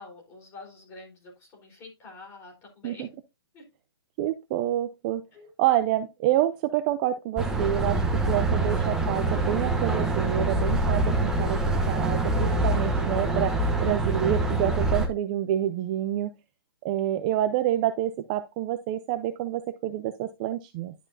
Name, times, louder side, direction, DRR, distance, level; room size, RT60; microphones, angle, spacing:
voice 1, 0.0-3.2 3.5-3.6 5.3-5.5 12.7-12.8, left 2 dB, 20° left, -1 dB, 4.1 m, -47 dB
voice 2, 4.2-5.2 5.6-13.5 13.8-16.3 16.8-20.9, right 12 dB, 20° right, 10 dB, 0.4 m, -28 dB
sound 1, 7.4-15.1, right 2 dB, 5° right, 0.9 m, -25 dB
11.0 x 6.0 x 2.7 m, 0.24 s
hypercardioid pair, 165°, 13 cm